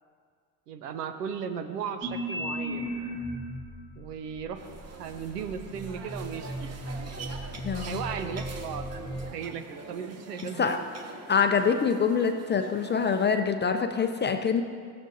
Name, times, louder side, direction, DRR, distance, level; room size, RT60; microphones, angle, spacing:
voice 1, 0.7-2.9 4.0-4.6 5.0-6.9 7.7-10.8, right 7 dB, 90° right, 8 dB, 0.8 m, -36 dB
sound 1, 2.0-3.7 4.4-9.3, equal, 10° right, 1.9 m, -36 dB
sound 2, 4.6-13.3, right 3 dB, 35° right, 1.0 m, -45 dB
voice 2, 7.6-8.0 10.6-10.8 11.3-14.6, left 6 dB, 25° left, 7 dB, 0.5 m, -25 dB
14.5 x 8.7 x 2.7 m, 2.1 s
hypercardioid pair, 65°, 46 cm